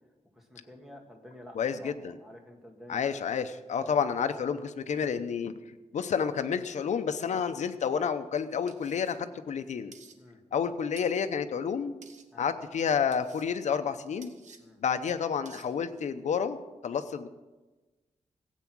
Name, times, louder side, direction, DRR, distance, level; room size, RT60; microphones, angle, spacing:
voice 1, 0.4-1.9 2.2-3.1 3.7-4.0 10.2-10.4 12.3-12.5 14.6-14.8, left 1 dB, 5° right, 2 dB, 1.8 m, -49 dB
voice 2, 1.5-2.2 2.9-5.5 5.9-9.9 10.5-12.0 12.4-14.3 14.8-17.3, left 7 dB, 75° left, 9 dB, 0.8 m, -30 dB
sound 1, 8.7-9.2 9.9-10.2 11.0-11.3 12.0-12.3 13.1-13.5 14.2-14.6 15.5-15.7, right 6 dB, 90° right, 1.0 m, -52 dB
15.5 x 8.3 x 6.1 m, 1.2 s
wide cardioid pair, 175°, 12 cm